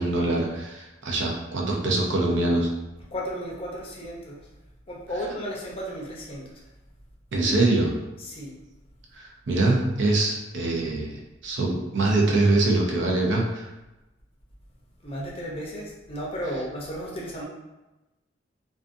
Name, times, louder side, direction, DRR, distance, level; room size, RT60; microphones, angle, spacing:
voice 1, 0.0-2.7 7.3-7.9 9.2-13.7, right 2 dB, 70° right, -1 dB, 0.5 m, -24 dB
voice 2, 3.1-4.5 4.9-6.6 8.2-8.5 15.0-17.4, equal, 30° left, -3 dB, 0.5 m, -34 dB
2.5 x 2.3 x 2.5 m, 1.0 s
head